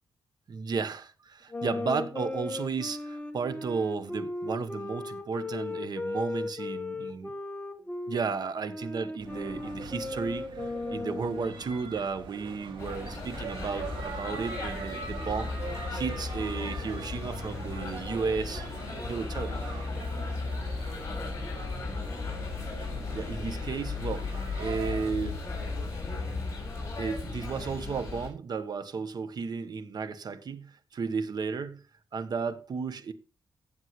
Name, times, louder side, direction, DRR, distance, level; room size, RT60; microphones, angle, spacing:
voice 1, 0.5-7.3 8.1-18.6 19.0-19.6 23.1-25.4 27.0-31.8 32.1-33.1, right 5 dB, 55° right, 1.2 m, -34 dB
sound 1, 1.5-8.2 8.7-11.6, left 2 dB, 15° left, 1.5 m, -36 dB
sound 2, 9.2-25.1, right 5 dB, 85° right, 2.4 m, -43 dB
sound 3, 12.8-28.3, left 3 dB, 35° left, 6.9 m, -35 dB
17.5 x 7.4 x 3.1 m
cardioid pair, 100°, 8 cm